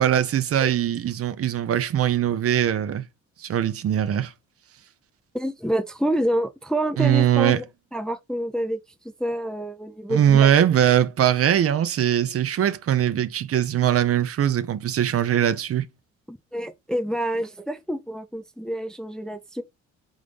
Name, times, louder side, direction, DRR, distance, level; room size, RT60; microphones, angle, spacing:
voice 1, 0.0-3.0 3.4-4.3 7.0-7.6 10.1-15.8, right 10 dB, 50° right, 0.6 m, -21 dB
voice 2, 5.3-7.6 7.9-10.7 16.3-19.6, right 1 dB, ahead, 0.4 m, -28 dB
3.8 x 3.6 x 3.2 m
cardioid pair, 90°, 30 cm